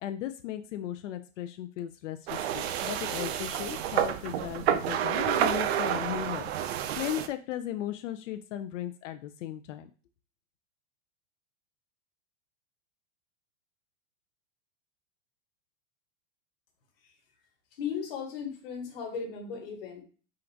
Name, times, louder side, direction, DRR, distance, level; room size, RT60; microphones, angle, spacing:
voice 1, 0.0-6.5 7.0-9.9, left 12 dB, 80° left, 8 dB, 0.5 m, -36 dB
sound 1, 2.3-7.3, right 10 dB, 60° right, 0.5 m, -29 dB
voice 2, 17.8-20.0, left 6 dB, 50° left, 2 dB, 1.3 m, -36 dB
3.7 x 2.6 x 4.5 m, 0.39 s
supercardioid pair, 175°, 37 cm